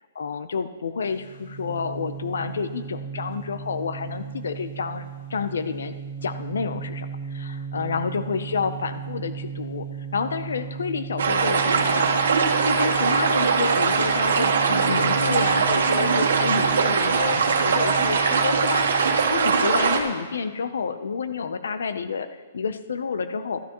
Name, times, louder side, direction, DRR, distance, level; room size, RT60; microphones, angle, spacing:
voice 1, 0.2-5.0 5.3-5.9 6.2-9.9 10.1-12.2 12.6-22.3 22.5-23.6, left 5 dB, 90° left, 11 dB, 0.7 m, -29 dB
sound 1, 1.0-19.3, right 7 dB, 50° left, 2.7 m, -36 dB
sound 2, 11.2-20.0, right 5 dB, 80° right, 1.4 m, -21 dB
12.5 x 12.0 x 3.1 m, 1.4 s
hypercardioid pair, 175°, 0 cm